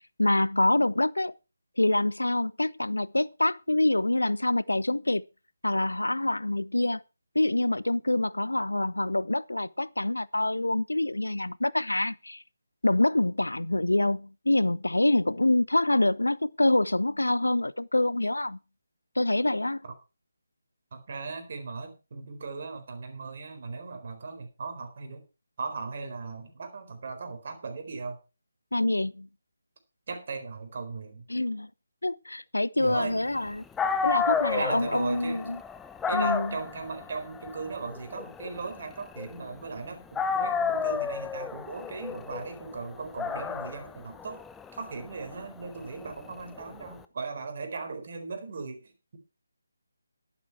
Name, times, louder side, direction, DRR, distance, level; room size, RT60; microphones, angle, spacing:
voice 1, 0.2-1.3 1.8-5.2 5.6-7.0 7.3-12.4 12.8-18.6 19.2-19.8 28.7-29.3 31.3-31.7 32.0-33.6 34.0-35.6 36.1-36.5, left 1 dB, 80° left, 0.6 m, -26 dB
voice 2, 20.9-25.2 25.6-28.2 30.1-31.3 32.8-33.2 34.5-35.4 36.1-44.4 44.7-49.2, right 4 dB, 40° right, 4.2 m, -38 dB
Dog, 33.5-33.6 33.8-39.8 40.1-46.9, left 6 dB, 5° left, 0.6 m, -32 dB
12.0 x 11.5 x 4.6 m
figure-of-eight pair, 150°, 0 cm